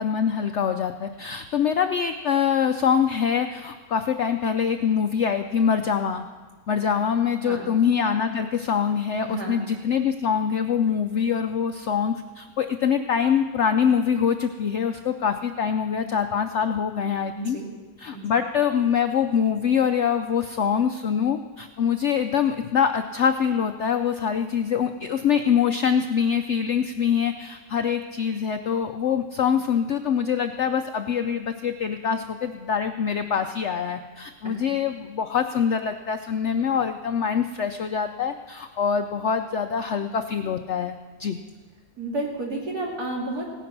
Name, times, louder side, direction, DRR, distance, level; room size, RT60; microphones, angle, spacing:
voice 1, 0.0-6.3 6.7-17.6 18.0-41.4, left 7 dB, 90° left, 7 dB, 0.6 m, -24 dB
voice 2, 9.2-9.6 17.3-17.8 18.1-18.3 34.4-34.6 42.0-43.4, right 2 dB, 60° right, -2 dB, 3.2 m, -31 dB
17.0 x 10.0 x 5.9 m, 1.4 s
omnidirectional pair, 1.9 m